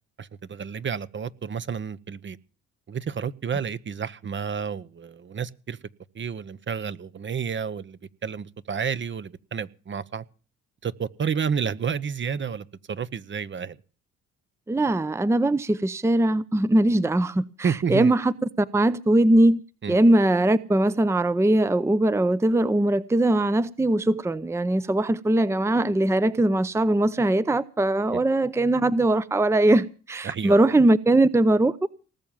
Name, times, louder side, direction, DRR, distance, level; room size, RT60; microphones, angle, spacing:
voice 1, 0.2-2.4 2.9-5.8 6.1-10.2 10.8-13.8 17.6-18.1 19.8-20.0 28.1-28.2 30.2-30.6, right 6 dB, 40° right, 0.9 m, -30 dB
voice 2, 14.7-19.6 19.9-31.9, right 1 dB, 10° right, 0.7 m, -21 dB
19.0 x 7.2 x 9.1 m
cardioid pair, 90°, 30 cm